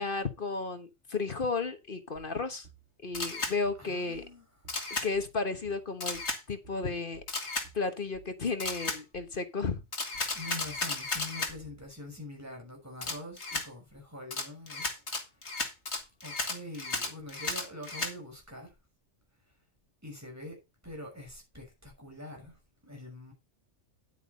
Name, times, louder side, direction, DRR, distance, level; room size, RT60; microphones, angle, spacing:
voice 1, 0.0-2.7 3.0-4.2 4.9-6.2 6.5-7.2 7.7-9.8, left 4 dB, 45° left, 1.4 m, -33 dB
sound 1, 2.2-11.9, right 5 dB, 75° right, 2.7 m, -56 dB
Camera, 3.1-3.5 4.7-5.1 6.0-6.4 7.3-7.7 8.6-9.0 9.9-11.5 13.0-13.7 14.3-18.1, left 3 dB, 60° left, 2.6 m, -34 dB
voice 2, 3.8-4.5 10.3-15.0 16.2-18.7 20.0-23.3, left 1 dB, 10° right, 5.9 m, -45 dB
10.5 x 8.7 x 4.1 m
omnidirectional pair, 1.3 m